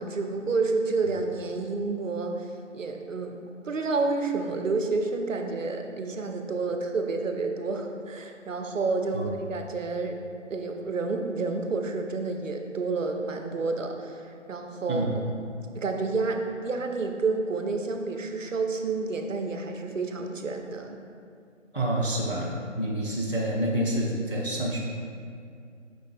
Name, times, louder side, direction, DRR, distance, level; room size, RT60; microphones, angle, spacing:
voice 1, 0.0-3.4 3.6-10.2 10.5-15.2 15.7-21.0, right 3 dB, 75° right, 4 dB, 0.6 m, -29 dB
voice 2, 21.7-24.8, right 1 dB, 45° left, -3 dB, 0.4 m, -28 dB
5.1 x 3.7 x 2.5 m, 2.3 s
figure-of-eight pair, 180°, 39 cm